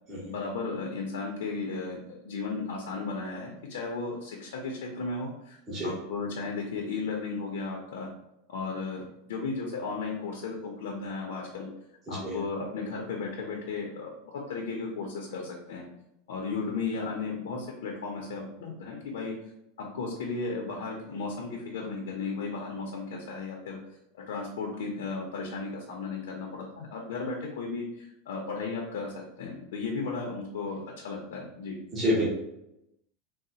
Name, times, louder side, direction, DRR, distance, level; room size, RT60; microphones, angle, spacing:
voice 1, 0.3-8.1 8.5-11.7 12.1-15.9 16.3-19.3 19.8-23.8 24.1-31.8, left 4 dB, 85° left, 0 dB, 0.6 m, -35 dB
voice 2, 12.1-12.4 31.9-32.3, equal, 20° right, -6 dB, 1.0 m, -28 dB
3.9 x 2.1 x 2.8 m, 0.83 s
supercardioid pair, 160°, 0 cm